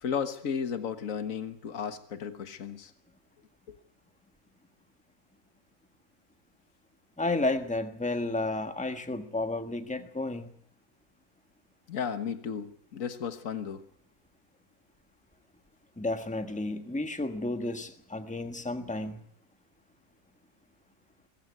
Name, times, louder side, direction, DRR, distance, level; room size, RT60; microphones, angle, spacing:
voice 1, 0.0-2.9 3.7-3.8 11.9-13.8 17.6-17.7, left 7 dB, 65° left, 10 dB, 1.8 m, -34 dB
voice 2, 7.2-10.5 16.0-19.2, left 2 dB, 5° left, 8 dB, 1.4 m, -32 dB
23.0 x 15.0 x 9.6 m, 0.68 s
omnidirectional pair, 1.5 m